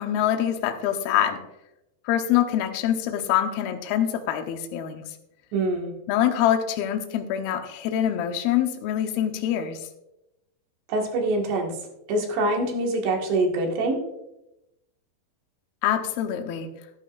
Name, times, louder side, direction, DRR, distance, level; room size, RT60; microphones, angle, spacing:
voice 1, 0.0-1.4 2.1-5.0 6.1-9.8 15.8-16.7, left 10 dB, 70° left, 5 dB, 2.6 m, -25 dB
voice 2, 5.5-5.9 10.9-11.7 12.1-14.0, right 2 dB, 70° right, 0 dB, 3.9 m, -24 dB
15.5 x 11.0 x 2.5 m, 0.91 s
omnidirectional pair, 5.2 m